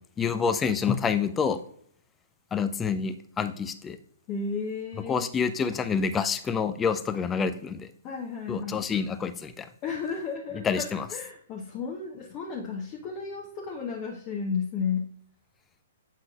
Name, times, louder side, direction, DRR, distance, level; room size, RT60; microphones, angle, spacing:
voice 1, 0.2-1.6 2.5-4.0 5.1-7.9 8.5-9.7 10.6-11.1, left 6 dB, 15° left, 11 dB, 0.4 m, -27 dB
voice 2, 4.3-5.3 8.0-8.9 9.8-10.8 11.1-15.1, left 5 dB, 30° left, -2 dB, 0.9 m, -33 dB
7.6 x 5.8 x 2.4 m, 0.65 s
figure-of-eight pair, 120°, 0 cm